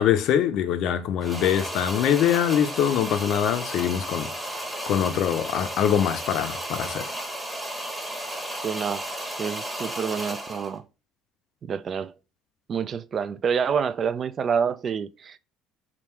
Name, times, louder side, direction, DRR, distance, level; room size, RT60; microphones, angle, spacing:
voice 1, 0.0-7.1, left 9 dB, 65° left, 0.5 m, -24 dB
sound 1, 1.2-10.8, right 1 dB, 10° right, 1.1 m, -34 dB
voice 2, 8.6-9.1 9.4-10.9 11.6-12.1 12.7-15.4, right 6 dB, 45° right, 0.3 m, -27 dB
3.6 x 2.4 x 4.4 m
supercardioid pair, 80°, 0 cm